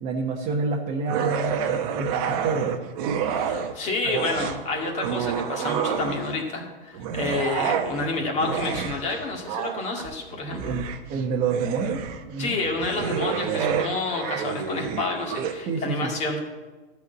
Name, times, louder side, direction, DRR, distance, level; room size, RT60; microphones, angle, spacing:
voice 1, 0.0-2.8 10.6-12.5 15.7-16.1, right 4 dB, 25° right, -1 dB, 1.1 m, -28 dB
sound 1, 1.1-3.7 4.0-6.4 6.9-15.5, right 7 dB, 40° right, 0.9 m, -29 dB
voice 2, 3.3-10.8 12.4-16.4, left 3 dB, 25° left, 0 dB, 2.0 m, -29 dB
12.0 x 4.6 x 7.9 m, 1.2 s
hypercardioid pair, 140°, 29 cm